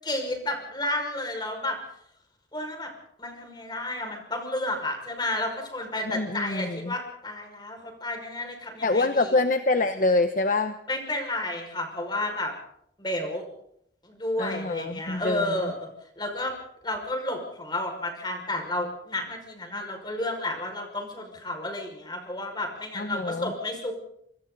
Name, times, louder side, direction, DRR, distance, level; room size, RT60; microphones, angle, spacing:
voice 1, 0.0-1.8 2.5-2.9 3.2-9.4 10.9-12.5 13.0-13.5 14.0-15.9 16.2-16.5 16.8-23.9, left 1 dB, 25° left, 3 dB, 5.7 m, -31 dB
voice 2, 6.1-6.9 8.8-10.8 14.4-15.7 23.0-23.5, left 2 dB, 50° left, 8 dB, 0.9 m, -25 dB
27.0 x 25.0 x 4.1 m, 0.72 s
head